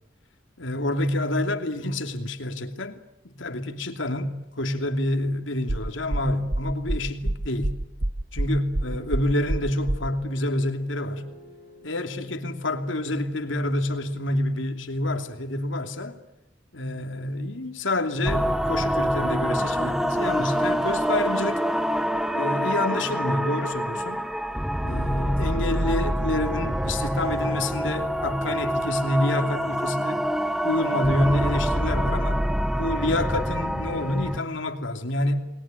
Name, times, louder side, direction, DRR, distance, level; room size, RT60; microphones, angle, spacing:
voice 1, 0.6-7.7 8.3-11.3 11.8-16.2 16.7-21.6 22.3-24.2 24.8-30.3 30.6-32.4 32.8-35.5, left 1 dB, 75° left, 2.8 m, -28 dB
sound 1, 5.7-10.1, right 1 dB, 60° right, 1.3 m, -27 dB
sound 2, 8.8-14.8, equal, 45° left, 7.7 m, -52 dB
sound 3, 18.3-34.4, equal, ahead, 0.9 m, -26 dB
28.5 x 21.5 x 9.0 m
head